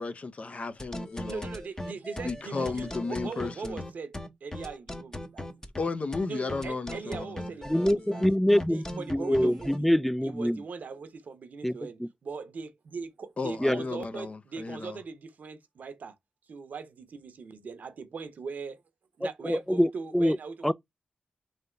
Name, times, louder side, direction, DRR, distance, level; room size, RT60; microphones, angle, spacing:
voice 1, 0.0-1.5 2.2-3.8 5.8-7.3 13.4-15.0, left 3 dB, 50° left, 0.6 m, -34 dB
sound 1, 0.8-9.8, left 1 dB, 20° left, 0.9 m, -38 dB
voice 2, 1.3-4.2 4.4-5.6 6.3-8.2 8.7-9.9 10.2-16.1 16.5-18.8 19.2-20.7, right 5 dB, 70° right, 0.7 m, -40 dB
voice 3, 7.7-10.6 11.6-12.1 13.6-13.8 19.4-20.4 20.6-20.7, equal, 5° left, 0.3 m, -25 dB
3.3 x 2.8 x 3.8 m
supercardioid pair, 40°, 3 cm